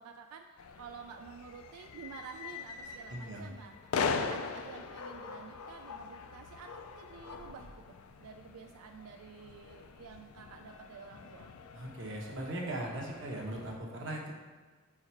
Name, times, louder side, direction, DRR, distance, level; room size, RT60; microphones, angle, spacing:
voice 1, 0.0-11.5, right 6 dB, 90° right, 4 dB, 0.4 m, -50 dB
sound 1, 0.6-13.8, left 5 dB, 80° left, 0.4 m, -41 dB
voice 2, 3.1-3.4 11.7-14.4, right 1 dB, 60° right, 0 dB, 1.0 m, -39 dB
4.8 x 4.6 x 4.4 m, 1.4 s
head